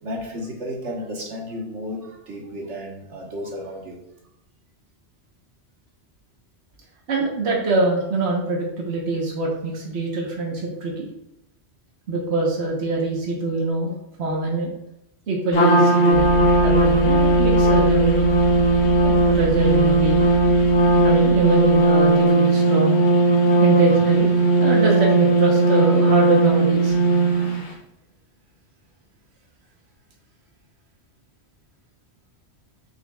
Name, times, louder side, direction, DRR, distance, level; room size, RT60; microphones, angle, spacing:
voice 1, 0.0-4.0, equal, 85° right, -1 dB, 1.6 m, -33 dB
voice 2, 7.1-11.1 12.1-14.7 15.3-18.3 19.0-20.2 21.0-23.1 23.3-24.3 24.6-26.9, right 2 dB, 70° right, -2 dB, 1.4 m, -24 dB
Trumpet, 15.5-27.7, right 2 dB, 60° left, 1.2 m, -17 dB
sound 1, 16.1-22.3, left 2 dB, 10° right, 0.6 m, -29 dB
6.6 x 6.6 x 2.4 m, 0.83 s
omnidirectional pair, 1.2 m